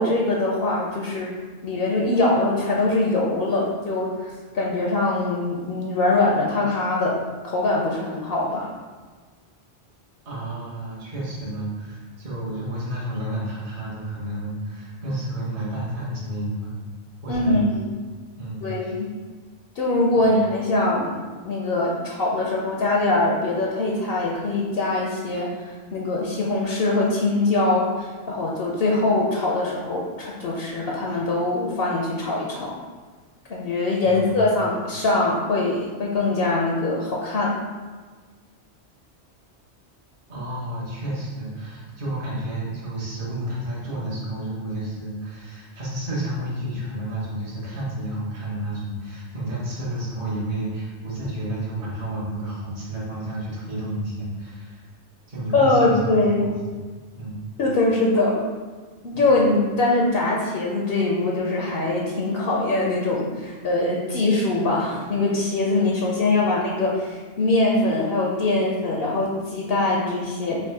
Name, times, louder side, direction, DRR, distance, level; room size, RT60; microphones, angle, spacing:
voice 1, 0.0-1.3 1.6-7.2 7.4-8.7 17.3-18.0 18.6-19.1 19.8-21.2 21.4-25.5 25.9-32.8 33.5-37.6 55.5-56.5 57.6-58.4 59.0-70.6, left 2 dB, 65° left, -2 dB, 0.8 m, -22 dB
voice 2, 10.2-16.7 17.2-17.7 18.4-19.0 20.2-20.3 34.0-34.4 40.3-54.9 55.3-56.5 56.9-57.4 59.1-59.3, right 1 dB, 50° right, -6 dB, 1.3 m, -31 dB
3.5 x 2.6 x 4.5 m, 1.4 s
omnidirectional pair, 1.2 m